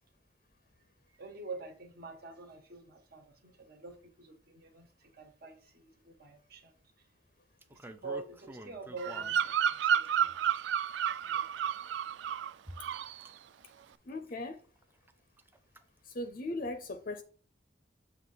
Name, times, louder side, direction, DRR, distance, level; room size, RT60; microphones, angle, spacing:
voice 1, 1.2-7.0 7.7-10.3 11.2-11.5 11.8-11.9, right 3 dB, 55° right, 1.4 m, -46 dB
sound 1, 7.6-9.3 10.0-10.9 11.8-11.9 12.6-13.3 13.6-13.9 14.3-14.4 14.8-15.1 15.4-15.8 16.2-16.3, right 1 dB, 10° right, 0.5 m, -48 dB
Bird vocalization bird call bird song, 9.0-12.5 12.8-13.2, right 8 dB, 75° right, 0.3 m, -31 dB
voice 2, 14.0-14.6 16.0-17.2, left 2 dB, 50° left, 0.6 m, -38 dB
7.3 x 2.9 x 5.6 m
head